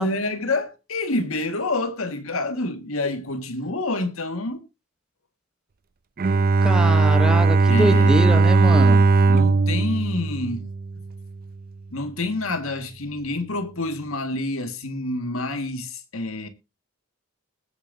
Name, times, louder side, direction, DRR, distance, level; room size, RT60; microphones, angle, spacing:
voice 1, 0.0-4.6 7.7-8.6 9.3-10.7 11.9-16.5, left 2 dB, 75° left, 1.7 m, -28 dB
Bowed string instrument, 6.2-11.2, right 3 dB, 45° right, 0.5 m, -18 dB
voice 2, 6.6-9.0, equal, 5° right, 0.9 m, -25 dB
20.5 x 8.9 x 2.6 m
head